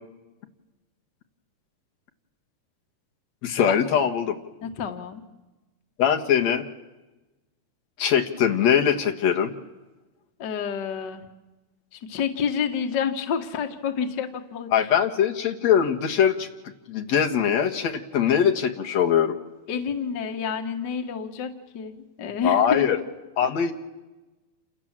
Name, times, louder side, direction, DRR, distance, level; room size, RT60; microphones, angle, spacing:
voice 1, 3.4-4.4 6.0-6.6 8.0-9.5 14.7-16.5 16.9-19.3 22.4-23.0 23.4-23.7, left 8 dB, 55° left, 4 dB, 2.3 m, -22 dB
voice 2, 4.6-5.2 10.4-11.2 11.9-14.9 19.7-23.0, left 7 dB, 75° left, 6 dB, 1.0 m, -29 dB
28.5 x 27.5 x 7.4 m, 1.1 s
omnidirectional pair, 4.5 m